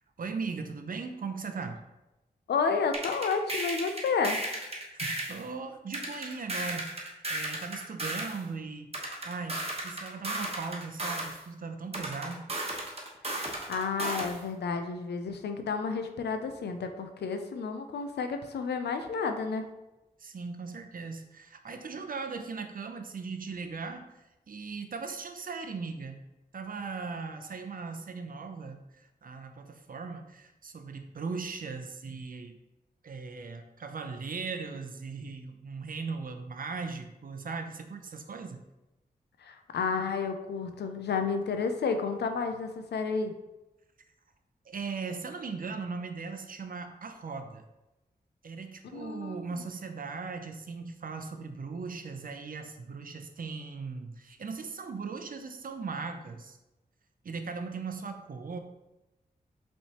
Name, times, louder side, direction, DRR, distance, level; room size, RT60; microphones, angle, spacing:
voice 1, 0.0-1.8 4.9-8.9 9.2-12.4 20.2-26.2 26.5-32.6 33.0-38.6 44.7-47.6 48.4-56.6 57.2-58.6, right 4 dB, 60° right, 6 dB, 0.6 m, -38 dB
voice 2, 2.5-4.4 13.2-19.7 39.4-43.3 48.9-49.5, left 5 dB, 90° left, 6 dB, 0.5 m, -31 dB
sound 1, 2.9-5.4 5.9-8.4 8.9-11.4 11.9-14.4, right 1 dB, 35° right, 1.1 m, -34 dB
5.4 x 3.3 x 2.9 m, 0.99 s
cardioid pair, 50°, 17 cm